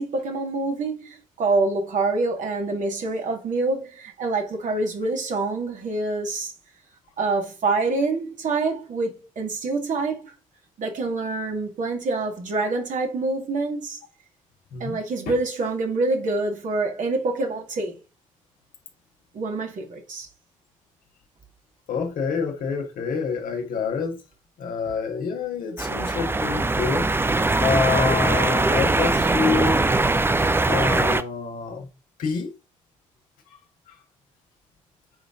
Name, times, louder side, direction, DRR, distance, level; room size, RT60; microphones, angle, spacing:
voice 1, 0.0-6.5 7.2-10.3 10.8-14.0 14.8-17.9 19.3-20.3, right 3 dB, 50° right, 2.1 m, -26 dB
voice 2, 21.9-24.2 24.6-27.1 27.6-29.9 30.7-31.9 32.2-32.5 33.9-34.0, left 5 dB, 55° left, 1.7 m, -27 dB
sound 1, 25.8-31.2, right 2 dB, 15° right, 0.7 m, -21 dB
9.4 x 3.9 x 3.8 m
figure-of-eight pair, 45°, 17 cm